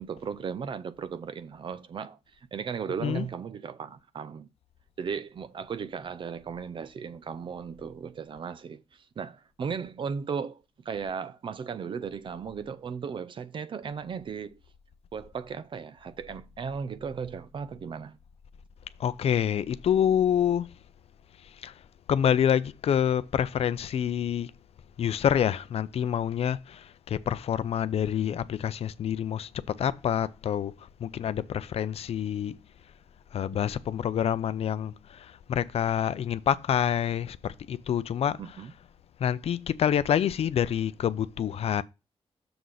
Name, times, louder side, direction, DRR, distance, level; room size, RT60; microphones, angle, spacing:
voice 1, 0.0-2.2 2.5-4.5 5.0-14.6 15.1-18.2 38.4-38.7, right 6 dB, 50° right, 0.6 m, -36 dB
voice 2, 19.0-20.7 21.6-21.7 22.1-24.5 25.0-30.7 31.0-32.6 33.3-38.6 39.2-41.8, left 9 dB, 70° left, 0.5 m, -27 dB
6.9 x 3.9 x 6.2 m
wide cardioid pair, 165°, 11 cm